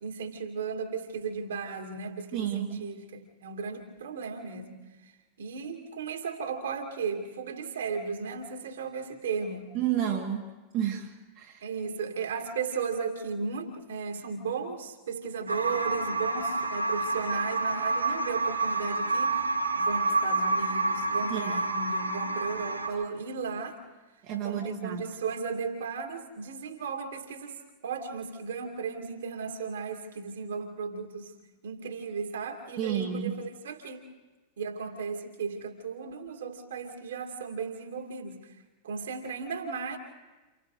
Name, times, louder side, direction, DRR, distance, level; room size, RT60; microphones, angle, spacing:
voice 1, 0.0-9.8 11.6-23.8 24.4-31.3 31.6-34.0 34.6-38.6 38.8-40.0, right 5 dB, 65° right, 2 dB, 2.6 m, -35 dB
voice 2, 2.3-2.9 9.7-10.5 10.7-11.6 21.3-21.6 24.2-25.1 32.8-33.4, right 9 dB, 40° right, 0 dB, 1.7 m, -31 dB
sound 1, 15.5-22.9, right 3 dB, 80° right, 4.0 m, -29 dB
30.0 x 29.0 x 3.3 m, 1.2 s
figure-of-eight pair, 90°, 0 cm